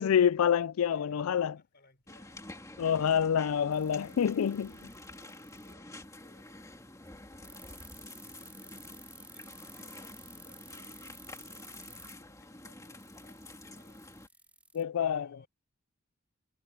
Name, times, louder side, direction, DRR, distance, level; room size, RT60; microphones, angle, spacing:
voice 1, 0.0-1.5 2.8-4.7 14.7-15.3, left 8 dB, 80° left, 0.4 m, -27 dB
voice 2, 0.9-3.5 4.4-14.6 15.0-15.5, left 2 dB, 50° left, 4.1 m, -65 dB
sound 1, 2.1-14.3, left 2 dB, 15° left, 2.5 m, -49 dB
sound 2, 3.7-5.7 7.4-12.1 13.0-14.8, right 2 dB, 5° right, 3.9 m, -52 dB
head